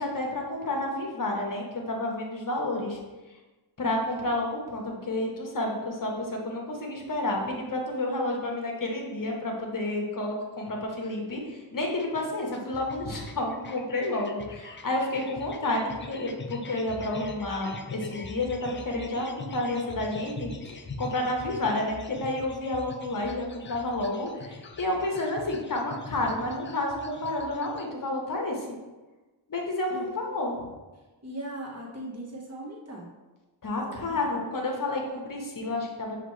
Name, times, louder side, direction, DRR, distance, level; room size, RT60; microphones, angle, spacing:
voice 1, 0.0-3.0 3.8-28.7 29.5-30.6 33.6-36.2, left 2 dB, 45° left, 0 dB, 1.0 m, -30 dB
sound 1, 12.0-27.9, left 3 dB, 25° left, 0.4 m, -43 dB
voice 2, 31.2-33.1 33.9-34.4, right 1 dB, 30° right, -3 dB, 1.3 m, -39 dB
5.8 x 2.9 x 3.1 m, 1.2 s
cardioid pair, 60°, 47 cm